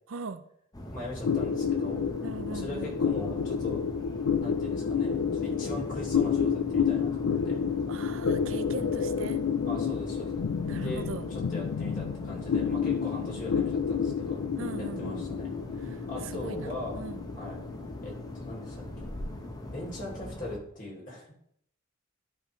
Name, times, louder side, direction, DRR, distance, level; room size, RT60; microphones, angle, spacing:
voice 1, 0.1-0.4 2.2-2.9 7.9-9.4 10.7-11.3 14.6-15.3 15.8-17.3, right 4 dB, 65° right, 10 dB, 0.6 m, -40 dB
sound 1, 0.7-20.6, left 1 dB, 15° left, 0.8 m, -41 dB
voice 2, 0.9-2.0 2.5-3.8 4.4-7.6 9.6-10.4 10.8-11.0 11.3-14.4 14.8-15.5 16.1-17.0 17.3-17.6 18.0-18.8 19.7-21.3, left 1 dB, 40° left, -3 dB, 2.8 m, -40 dB
sound 2, 1.2-20.0, left 7 dB, 80° left, 0.4 m, -30 dB
11.0 x 5.0 x 3.1 m, 0.70 s
head